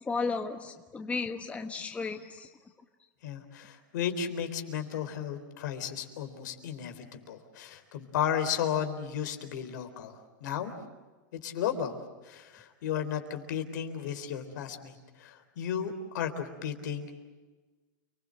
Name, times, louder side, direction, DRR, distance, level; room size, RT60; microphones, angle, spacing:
voice 1, 0.0-2.5, left 4 dB, 15° left, 5 dB, 1.3 m, -34 dB
voice 2, 3.2-10.7 11.3-12.0 12.2-17.2, left 8 dB, 70° left, 7 dB, 3.9 m, -34 dB
29.5 x 21.0 x 7.8 m, 1.3 s
supercardioid pair, 140°, 10 cm